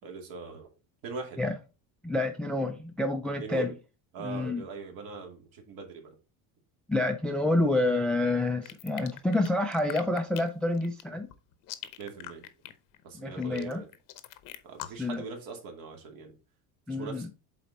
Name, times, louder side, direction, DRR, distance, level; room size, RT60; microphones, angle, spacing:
voice 1, 0.0-0.7 1.0-1.4 3.4-3.8 4.1-6.1 12.0-12.4 13.0-13.9 14.6-16.3 16.9-17.3, right 5 dB, 60° right, 2.3 m, -41 dB
voice 2, 2.0-3.7 4.2-4.6 6.9-11.3 13.2-13.8 15.0-15.2 16.9-17.3, left 2 dB, ahead, 0.4 m, -28 dB
sound 1, 8.6-15.1, left 13 dB, 50° left, 0.8 m, -43 dB
7.6 x 4.2 x 4.1 m
cardioid pair, 160°, 40 cm